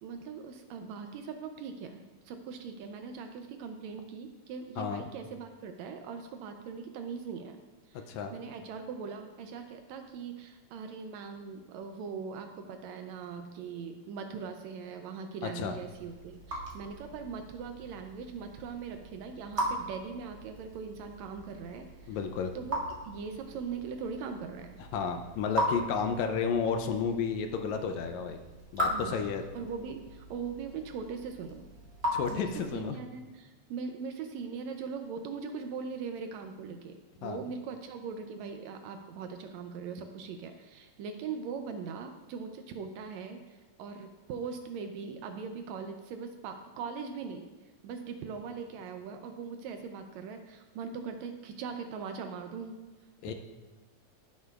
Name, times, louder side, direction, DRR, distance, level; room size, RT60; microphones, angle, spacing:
voice 1, 0.0-7.6 7.9-22.2 22.6-24.8 28.9-29.3 29.5-31.7 32.3-47.5 47.8-52.8, right 5 dB, 80° right, 6 dB, 1.7 m, -40 dB
voice 2, 15.4-15.7 22.1-22.5 24.9-28.4 28.7-29.4 32.1-33.0 37.2-37.4 53.2-53.3, left 6 dB, 80° left, 6 dB, 1.8 m, -32 dB
Raindrop / Drip, 15.8-32.9, equal, 35° right, 1.0 m, -39 dB
14.5 x 6.6 x 2.4 m, 1.2 s
omnidirectional pair, 3.5 m